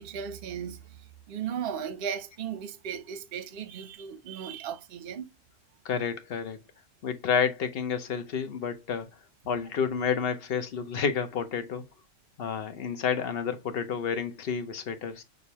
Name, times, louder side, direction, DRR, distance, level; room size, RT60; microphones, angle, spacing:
voice 1, 0.0-5.3, right 8 dB, 55° right, 0.8 m, -36 dB
voice 2, 5.8-6.6 7.0-9.1 9.5-11.8 12.4-15.2, left 6 dB, 55° left, 0.9 m, -30 dB
6.4 x 2.6 x 2.8 m
omnidirectional pair, 1.3 m